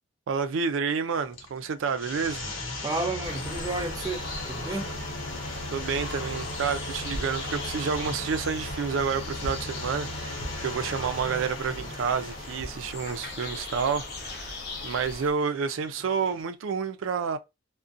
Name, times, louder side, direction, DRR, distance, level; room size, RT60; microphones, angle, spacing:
voice 1, 0.3-2.4 5.7-17.4, right 6 dB, 90° right, 0.4 m, -29 dB
sound 1, 1.2-16.4, left 1 dB, 90° left, 0.8 m, -38 dB
voice 2, 2.8-4.9, right 2 dB, 20° right, 0.3 m, -32 dB
sound 2, 3.2-15.3, left 2 dB, 55° left, 0.5 m, -39 dB
2.4 x 2.1 x 2.5 m
head